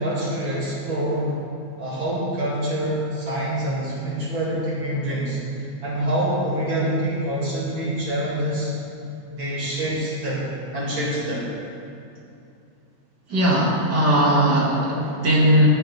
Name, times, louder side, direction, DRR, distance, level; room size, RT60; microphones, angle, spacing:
voice 1, 0.0-1.4 1.8-5.4 5.8-8.7 9.3-10.5 10.7-11.4, right 1 dB, 85° right, -9 dB, 3.1 m, -26 dB
voice 2, 13.3-15.7, right 1 dB, 60° right, -5 dB, 2.7 m, -18 dB
15.0 x 9.4 x 3.3 m, 2.5 s
omnidirectional pair, 2.1 m